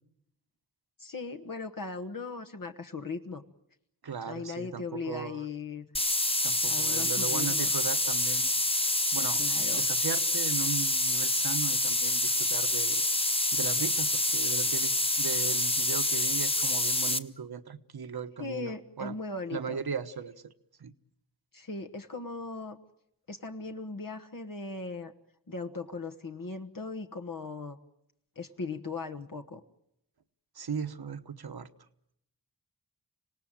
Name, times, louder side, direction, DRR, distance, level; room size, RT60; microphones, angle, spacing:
voice 1, 1.0-3.4 4.2-6.0 6.6-7.7 9.4-9.8 18.4-19.8 21.5-22.8 23.3-25.1 25.5-27.8 28.3-29.6, left 4 dB, 55° left, 5 dB, 1.4 m, -38 dB
voice 2, 4.0-5.5 6.4-8.5 9.1-9.4 9.7-13.1 13.5-19.2 19.5-20.5 20.8-20.9 30.5-31.7, right 6 dB, 65° right, 10 dB, 1.2 m, -37 dB
sound 1, 5.9-17.2, left 1 dB, 15° left, 1.1 m, -27 dB
26.5 x 18.0 x 9.0 m, 0.79 s
cardioid pair, 50°, 40 cm